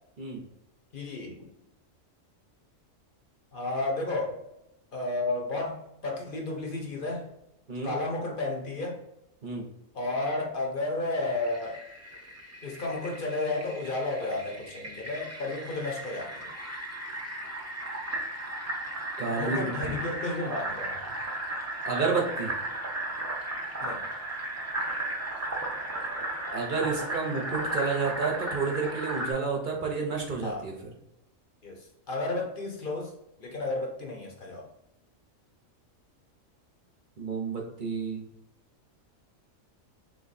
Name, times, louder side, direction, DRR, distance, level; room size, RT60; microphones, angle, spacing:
voice 1, 0.9-1.5 3.5-4.4 4.9-7.3 7.8-9.0 9.9-11.8 12.6-16.5 19.4-21.1 23.8-24.0 30.4-30.7 31.6-33.1 33.4-34.7, left 2 dB, 45° left, 1 dB, 0.8 m, -32 dB
Fill (with liquid), 11.3-29.3, right 1 dB, 15° right, 0.5 m, -35 dB
voice 2, 19.2-20.0 21.8-22.5 26.5-30.7 37.2-38.3, right 4 dB, 45° right, 0 dB, 0.7 m, -30 dB
3.6 x 3.2 x 4.1 m, 0.83 s
omnidirectional pair, 1.4 m